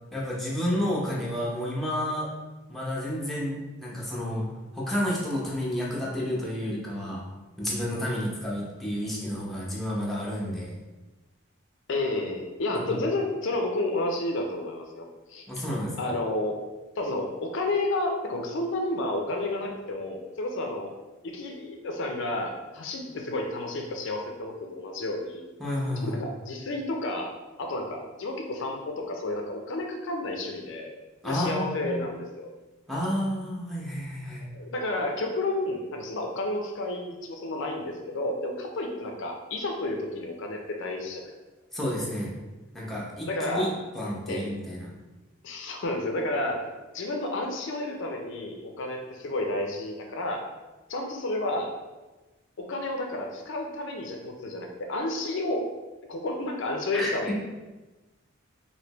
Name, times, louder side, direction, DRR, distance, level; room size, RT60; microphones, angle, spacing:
voice 1, 0.1-2.3 2.7-4.5 4.7-7.2 7.6-10.7 12.7-13.0 15.5-16.1 25.6-26.2 31.2-32.0 32.9-34.4 41.7-42.3 42.7-44.9 56.9-57.3, equal, ahead, -6 dB, 0.7 m, -30 dB
voice 2, 11.9-15.4 16.0-16.6 17.0-20.9 21.2-25.5 26.0-27.3 27.6-30.9 31.2-32.5 34.5-41.3 43.3-43.7 44.3-44.5 45.4-46.6 46.9-50.4 50.9-51.7 52.6-55.7 56.1-57.3, left 2 dB, 60° left, 2 dB, 0.4 m, -31 dB
3.2 x 2.7 x 2.9 m, 1.1 s
head